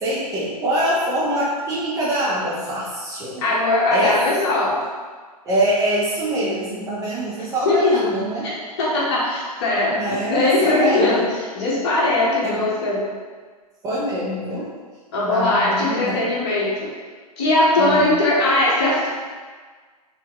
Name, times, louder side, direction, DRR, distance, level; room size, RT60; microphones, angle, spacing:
voice 1, 0.0-3.4 3.9-4.2 5.4-8.5 9.9-11.2 12.4-12.6 13.8-14.6 15.2-16.3 17.8-18.1, right 1 dB, 15° right, -7 dB, 0.7 m, -24 dB
voice 2, 3.4-4.8 7.6-7.9 8.4-13.0 15.1-16.7 17.4-19.1, left 2 dB, 40° left, -6 dB, 1.4 m, -20 dB
4.5 x 3.7 x 3.1 m, 1.5 s
figure-of-eight pair, 110°, 20 cm